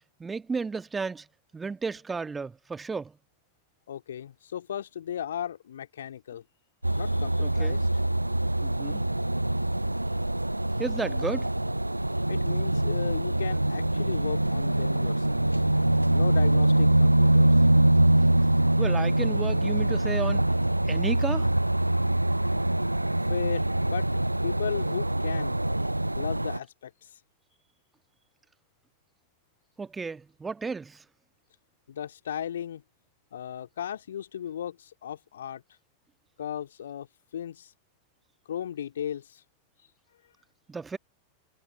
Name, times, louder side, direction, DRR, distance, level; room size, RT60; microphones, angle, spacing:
voice 1, 0.2-1.2 1.5-3.1 7.4-7.8 8.6-9.0 10.8-11.5 18.8-20.4 20.9-21.5 29.8-31.0 40.7-41.0, right 4 dB, 15° right, 1.5 m, -33 dB
voice 2, 3.9-6.4 6.9-7.9 12.3-15.6 16.1-17.6 23.3-24.1 24.4-25.6 26.1-27.1 31.9-32.8 33.3-35.6 36.4-37.1 37.3-37.7 38.5-39.4, left 9 dB, 65° left, 2.6 m, -36 dB
sound 1, 6.8-26.6, right 1 dB, 85° right, 0.4 m, -24 dB
figure-of-eight pair, 90°, 0 cm